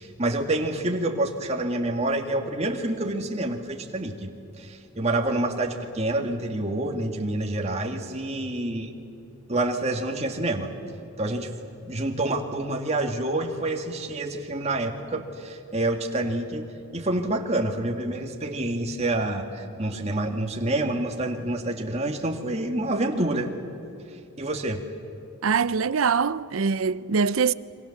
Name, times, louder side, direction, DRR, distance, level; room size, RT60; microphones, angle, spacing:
voice 1, 0.0-8.9 9.5-10.7 11.2-11.6 11.8-16.7 16.9-23.5 24.4-24.8, right 2 dB, 30° right, 2.1 m, -27 dB
voice 2, 25.4-27.5, right 5 dB, 80° right, 0.6 m, -23 dB
28.0 x 25.0 x 7.2 m
head